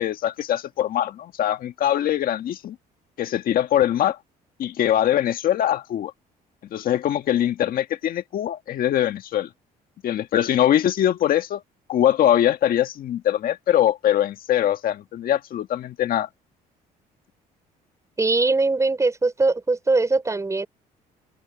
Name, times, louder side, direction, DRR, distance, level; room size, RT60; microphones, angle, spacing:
voice 1, 0.0-2.7 3.2-4.2 4.6-6.1 6.7-9.5 10.0-11.6 11.9-16.3, left 11 dB, 60° left, 1.6 m, -22 dB
voice 2, 18.2-20.7, right 3 dB, 20° right, 5.3 m, -21 dB
cardioid pair, 110°, 17 cm